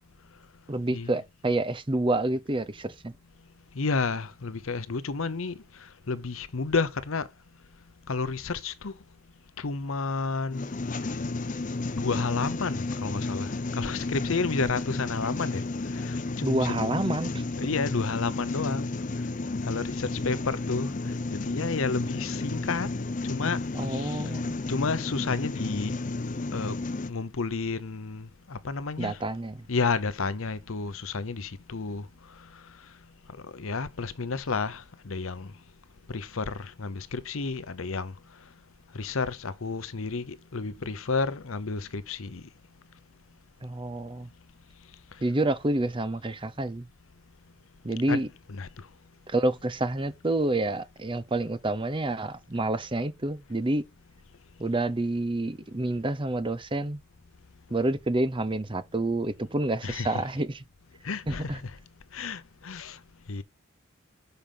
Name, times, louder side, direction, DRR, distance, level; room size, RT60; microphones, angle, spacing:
voice 1, 0.7-3.1 16.4-17.4 23.7-24.6 29.0-29.6 43.6-44.3 45.2-46.8 47.8-48.3 49.3-53.8 54.6-57.0 57.7-60.6 61.3-61.6, right 2 dB, 25° right, 0.7 m, -28 dB
voice 2, 3.8-5.6 6.1-7.2 8.1-8.9 9.6-10.7 11.9-15.6 16.1-16.9 17.6-18.9 19.7-20.9 21.3-22.9 23.3-23.6 23.9-24.2 24.7-26.0 26.5-26.7 27.1-29.2 29.7-32.1 33.5-35.5 36.1-38.1 38.9-42.4 48.1-48.2 48.5-48.7 59.8-60.2 61.0-61.6 62.1-63.0 63.3-63.4, left 4 dB, 80° left, 0.8 m, -31 dB
sound 1, 10.5-27.1, left 2 dB, 40° left, 0.6 m, -32 dB
6.9 x 5.2 x 5.7 m
head